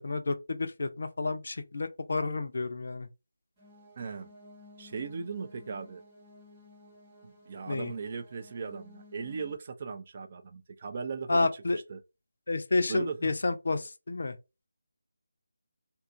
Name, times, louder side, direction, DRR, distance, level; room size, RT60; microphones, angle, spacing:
voice 1, 0.0-3.1 7.7-7.9 11.3-11.8 12.5-14.3, left 3 dB, 50° left, 0.4 m, -30 dB
sound 1, 3.6-9.6, left 2 dB, 10° right, 1.1 m, -55 dB
voice 2, 4.0-4.3 4.8-6.0 7.2-12.0 12.9-13.3, right 5 dB, 35° right, 0.3 m, -38 dB
2.7 x 2.3 x 2.5 m
figure-of-eight pair, 155°, 0 cm